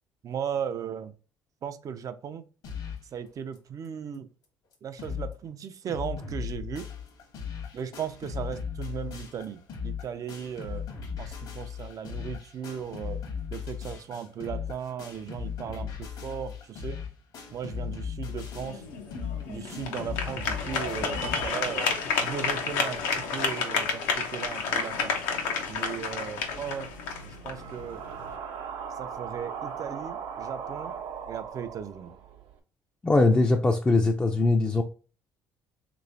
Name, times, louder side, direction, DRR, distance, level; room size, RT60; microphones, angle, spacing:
voice 1, 0.2-1.1 1.6-2.4 3.1-4.3 4.8-6.9 7.7-10.9 11.2-13.2 13.5-17.0 17.5-18.8 19.5-25.2 25.7-26.9 27.2-28.0 28.9-31.0 31.3-32.2, right 8 dB, 45° right, 0.5 m, -37 dB
sound 1, 2.6-3.1 3.5-3.6 3.8-3.9 4.4-4.5 4.7-5.3 5.6-21.5, left 6 dB, 65° left, 1.2 m, -37 dB
sound 2, 18.3-28.4, left 5 dB, 80° left, 0.7 m, -31 dB
sound 3, 26.4-32.5, right 7 dB, 70° right, 0.8 m, -39 dB
voice 2, 33.0-34.8, left 2 dB, 15° left, 0.4 m, -21 dB
3.2 x 3.0 x 2.7 m
supercardioid pair, 70°, 8 cm